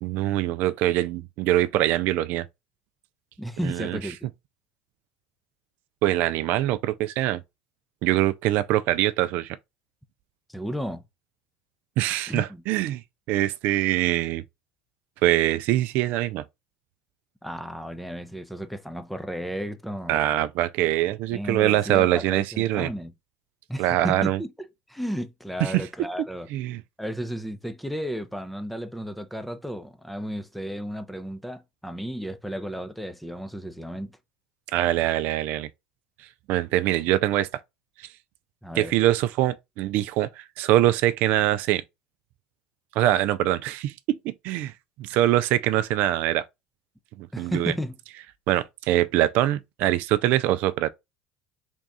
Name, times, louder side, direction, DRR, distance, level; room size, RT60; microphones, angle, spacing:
voice 1, 0.0-2.5 3.6-4.0 6.0-7.4 8.0-9.6 12.0-13.0 13.3-14.4 15.2-16.4 20.1-22.9 23.8-24.4 25.6-25.9 26.5-26.8 34.7-35.7 36.2-37.5 38.0-38.1 38.8-41.8 42.9-44.7 45.0-46.5 47.2-47.7 48.5-50.9, right 14 dB, 60° right, 0.3 m, -23 dB
voice 2, 3.4-4.3 10.5-11.0 12.3-12.6 17.4-20.2 21.3-23.1 23.7-26.5 27.0-34.2 38.6-38.9 47.3-47.9, equal, ahead, 0.5 m, -33 dB
3.5 x 2.4 x 4.0 m
supercardioid pair, 95°, 3 cm